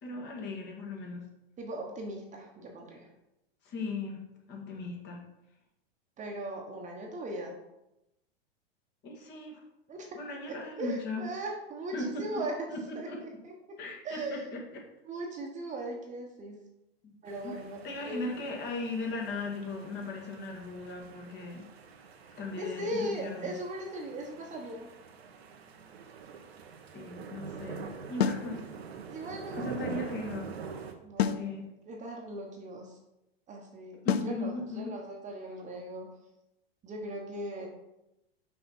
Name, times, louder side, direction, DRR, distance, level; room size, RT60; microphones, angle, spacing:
voice 1, 0.0-1.3 3.6-4.2 4.5-5.2 9.0-9.6 10.1-11.3 11.9-12.4 12.7-13.2 13.8-14.8 17.0-17.1 17.4-17.6 17.8-21.7 22.4-23.5 26.9-28.7 29.5-30.5 31.3-31.7 34.0-34.9, left 2 dB, 35° left, 0 dB, 2.0 m, -37 dB
voice 2, 1.6-3.1 6.2-7.6 9.9-10.2 10.8-14.5 15.0-16.6 17.2-18.3 22.6-24.9 29.1-30.0 31.0-31.6 31.9-33.0 33.5-36.2 36.8-37.7, right 1 dB, 25° right, 1 dB, 1.2 m, -39 dB
sound 1, 17.3-30.9, right 6 dB, 85° right, 1.1 m, -45 dB
sound 2, 28.2-28.5 31.2-31.5 34.1-34.4, left 9 dB, 90° left, 0.5 m, -28 dB
5.8 x 5.6 x 4.3 m, 0.89 s
hypercardioid pair, 120°, 30 cm